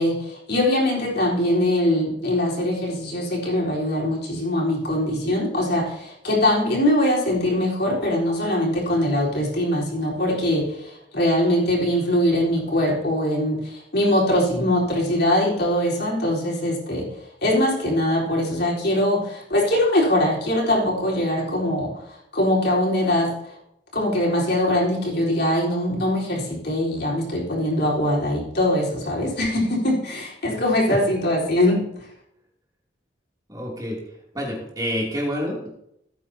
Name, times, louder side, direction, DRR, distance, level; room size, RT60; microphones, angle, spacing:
voice 1, 0.0-17.1 17.4-21.9 22.3-23.3 23.9-31.8, left 1 dB, 55° left, -4 dB, 4.1 m, -22 dB
voice 2, 33.5-34.0 34.3-35.7, equal, 20° right, -3 dB, 2.9 m, -28 dB
18.5 x 9.1 x 2.9 m, 0.77 s
head